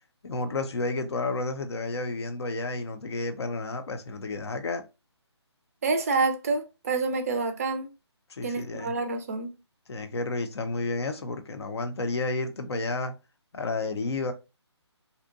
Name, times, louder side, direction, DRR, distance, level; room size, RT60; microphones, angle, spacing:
voice 1, 0.2-4.8 8.3-8.9 9.9-13.1 13.5-14.3, left 3 dB, 65° left, 0.5 m, -31 dB
voice 2, 5.8-7.9 8.4-9.5, right 3 dB, 30° right, 0.4 m, -28 dB
2.6 x 2.1 x 2.5 m
figure-of-eight pair, 150°, 15 cm